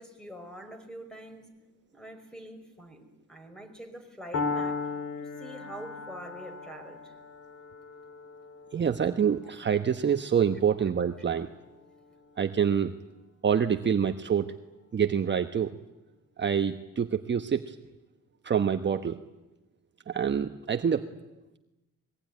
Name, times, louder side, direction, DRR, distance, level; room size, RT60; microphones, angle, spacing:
voice 1, 0.0-1.5 1.9-4.9 5.2-7.1, right 1 dB, ahead, 6 dB, 5.6 m, -45 dB
Piano, 4.3-12.3, left 4 dB, 55° left, 3.6 m, -38 dB
voice 2, 8.7-11.5 12.4-12.9 13.4-14.5 14.9-15.7 16.4-17.8 18.4-19.2 20.1-21.0, right 7 dB, 35° right, 7 dB, 1.2 m, -26 dB
25.0 x 22.0 x 9.6 m, 1.0 s
cardioid pair, 90°, 30 cm